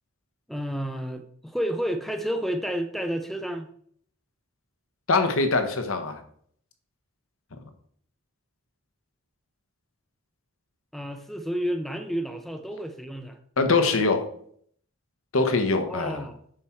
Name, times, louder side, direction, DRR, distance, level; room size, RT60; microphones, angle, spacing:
voice 1, 0.5-3.7 10.9-13.4 15.9-16.4, equal, ahead, 7 dB, 0.5 m, -30 dB
voice 2, 5.1-6.2 13.6-14.2 15.3-16.2, left 3 dB, 70° left, 7 dB, 1.1 m, -23 dB
7.7 x 5.9 x 4.5 m, 0.62 s
head